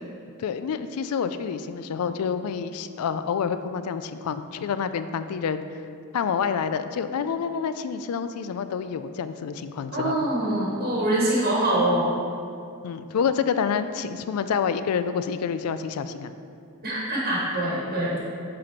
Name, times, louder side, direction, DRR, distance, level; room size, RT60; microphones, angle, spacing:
voice 1, 0.4-5.6 6.1-10.3 12.8-16.3, left 6 dB, 90° left, 11 dB, 0.4 m, -28 dB
voice 2, 9.9-12.1 16.8-18.2, right 1 dB, 45° right, -6 dB, 1.3 m, -24 dB
7.5 x 4.2 x 4.5 m, 2.5 s
head